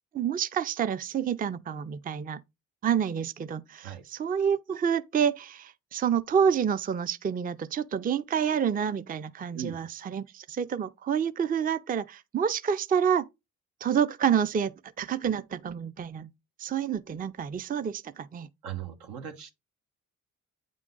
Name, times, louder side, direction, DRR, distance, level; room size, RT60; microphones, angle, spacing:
voice 1, 0.1-2.4 2.8-13.2 13.8-16.3 16.6-18.5, right 8 dB, 25° right, 0.4 m, -28 dB
voice 2, 18.6-19.5, right 9 dB, 90° right, 1.2 m, -38 dB
8.3 x 3.7 x 3.7 m
cardioid pair, 70°, 34 cm